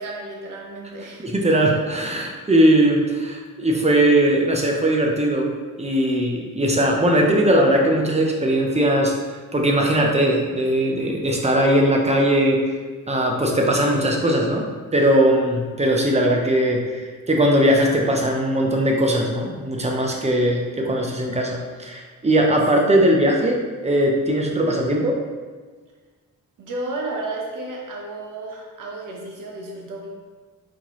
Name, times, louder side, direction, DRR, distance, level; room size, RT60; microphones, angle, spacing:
voice 1, 0.0-1.3 22.9-23.0 26.6-30.1, right 2 dB, 60° right, -1 dB, 1.0 m, -32 dB
voice 2, 1.2-5.5 5.8-12.6 13.1-14.6 14.9-25.2, right 1 dB, 20° right, 0 dB, 0.6 m, -19 dB
4.3 x 4.0 x 3.0 m, 1.4 s
wide cardioid pair, 135°, 35 cm